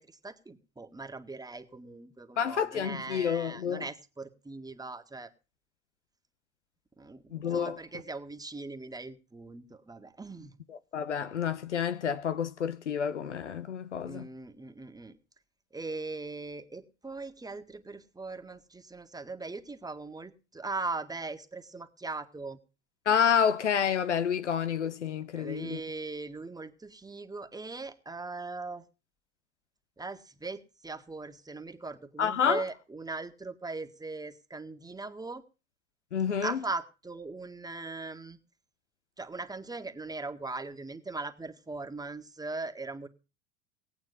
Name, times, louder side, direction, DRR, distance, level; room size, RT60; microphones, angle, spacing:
voice 1, 0.0-5.3 7.0-7.2 7.5-10.5 14.1-15.2 15.7-22.6 25.3-28.8 30.0-35.4 36.4-38.4 39.2-43.1, right 3 dB, 10° right, 1.8 m, -40 dB
voice 2, 2.4-3.8 7.3-7.7 10.9-14.3 23.1-25.8 32.2-32.6 36.1-36.6, left 7 dB, 80° left, 0.8 m, -29 dB
18.5 x 8.7 x 5.4 m
figure-of-eight pair, 70°, 35 cm